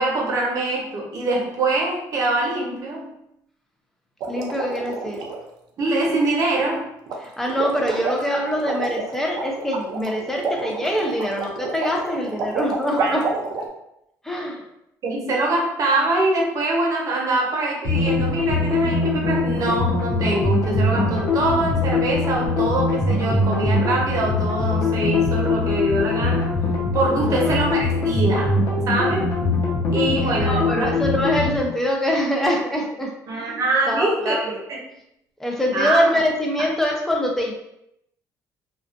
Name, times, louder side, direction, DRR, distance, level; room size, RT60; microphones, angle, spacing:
voice 1, 0.0-3.1 5.8-6.9 13.0-13.2 15.0-26.5 26.9-28.5 28.9-29.3 29.9-30.9 33.3-34.8 35.7-36.1, right 2 dB, 50° right, -2 dB, 0.8 m, -23 dB
sound 1, 4.2-5.4 7.1-7.2 7.5-13.7, right 4 dB, 70° right, 0.5 m, -29 dB
voice 2, 4.3-5.2 7.2-13.3 14.2-14.6 27.1-27.6 30.2-33.1 33.4-33.6 33.9-34.4 35.4-37.5, equal, 5° left, -1 dB, 0.6 m, -24 dB
sound 2, 17.8-31.6, left 3 dB, 65° left, 0.8 m, -22 dB
2.4 x 2.3 x 2.4 m, 0.81 s
cardioid pair, 110°, 7 cm